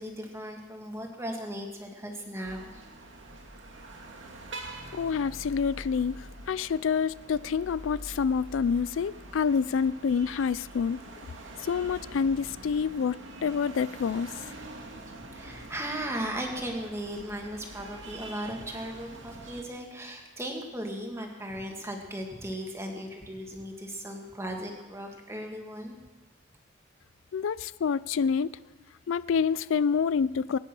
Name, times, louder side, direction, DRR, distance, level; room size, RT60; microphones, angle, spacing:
voice 1, 0.0-2.8 15.1-26.0, right 1 dB, 15° right, 2 dB, 2.0 m, -37 dB
sound 1, 2.4-19.6, right 2 dB, 70° right, 2.2 m, -45 dB
voice 2, 4.9-11.0 11.6-14.3 27.3-28.5 29.1-30.6, left 6 dB, 80° left, 18 dB, 0.4 m, -27 dB
21.0 x 9.9 x 6.1 m, 1.2 s
head